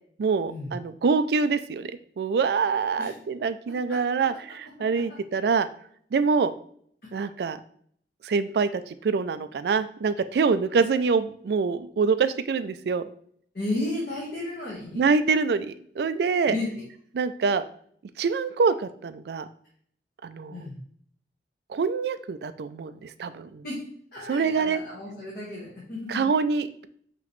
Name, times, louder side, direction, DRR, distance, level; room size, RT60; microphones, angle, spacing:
voice 1, 0.2-1.9 2.2-5.7 6.1-6.5 7.1-7.6 8.2-13.1 15.0-16.5 17.1-17.6 18.2-19.5 20.2-20.7 21.7-23.6 24.3-24.8 26.1-26.9, right 5 dB, 70° right, 12 dB, 0.3 m, -25 dB
voice 2, 3.9-4.2 4.9-5.2 7.0-7.1 13.5-15.0 16.5-16.8 20.5-20.8 23.6-23.8 24.1-26.3, left 2 dB, 55° left, -7 dB, 1.4 m, -33 dB
5.8 x 3.0 x 3.1 m, 0.62 s
head